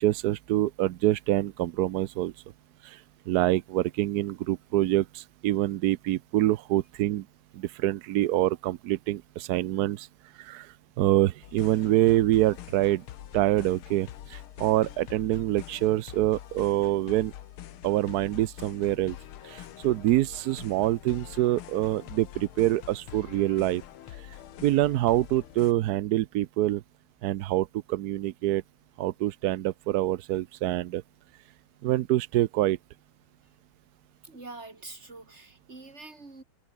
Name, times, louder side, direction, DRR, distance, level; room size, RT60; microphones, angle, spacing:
voice 1, 0.0-2.3 2.8-3.0 3.3-7.2 7.5-10.1 10.4-13.0 13.3-17.3 17.8-19.2 19.4-23.8 24.6-26.8 27.2-28.6 29.0-31.0 31.8-32.8, right 14 dB, 75° right, 0.9 m, -26 dB
sound 1, 11.4-25.7, left 13 dB, 85° left, 1.8 m, -45 dB
voice 2, 34.2-36.4, right 3 dB, 30° right, 3.9 m, -45 dB
omnidirectional pair, 2.3 m